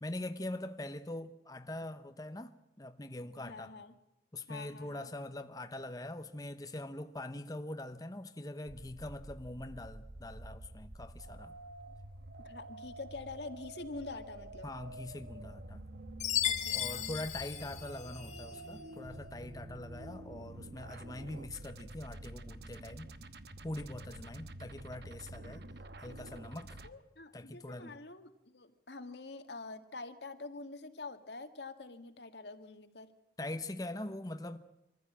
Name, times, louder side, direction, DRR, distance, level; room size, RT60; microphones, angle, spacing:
voice 1, 0.0-3.8 4.3-11.6 14.6-15.8 16.7-23.1 23.6-25.6 26.0-26.8 27.3-28.0 33.4-34.6, left 1 dB, 20° left, 0.8 m, -43 dB
voice 2, 3.4-3.9 4.5-5.1 12.4-14.7 16.4-17.1 24.0-24.6 26.8-33.1, left 3 dB, 80° left, 1.8 m, -46 dB
sound 1, 8.7-26.9, right 1 dB, 65° right, 1.1 m, -48 dB
Chime, 16.2-18.5, left 11 dB, 40° left, 2.1 m, -35 dB
24.0 x 15.0 x 8.5 m
head